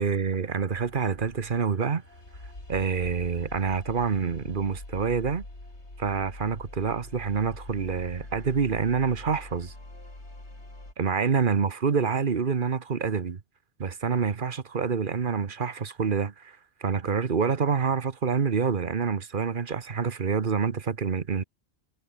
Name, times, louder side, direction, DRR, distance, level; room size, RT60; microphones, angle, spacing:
voice 1, 0.0-2.0 2.7-5.4 6.0-9.7 11.0-13.4 13.8-21.4, right 6 dB, 50° right, 1.3 m, -27 dB
sound 1, 0.7-10.9, left 2 dB, 80° left, 6.1 m, -44 dB
omnidirectional pair, 1.2 m